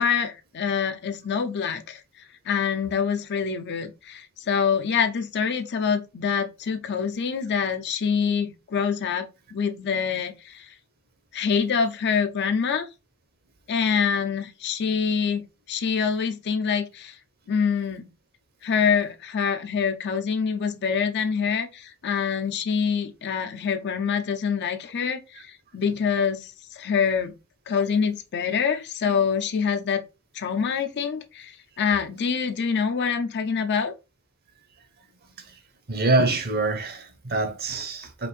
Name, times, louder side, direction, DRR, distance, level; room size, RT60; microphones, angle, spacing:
voice 1, 0.0-2.0 2.5-10.7 11.3-12.8 13.7-17.1 17.5-18.1 18.6-27.3 27.7-30.0 30.3-33.9, left 6 dB, 50° left, 0.5 m, -25 dB
voice 2, 35.9-38.3, right 2 dB, 45° right, 0.8 m, -25 dB
5.0 x 2.5 x 3.2 m
head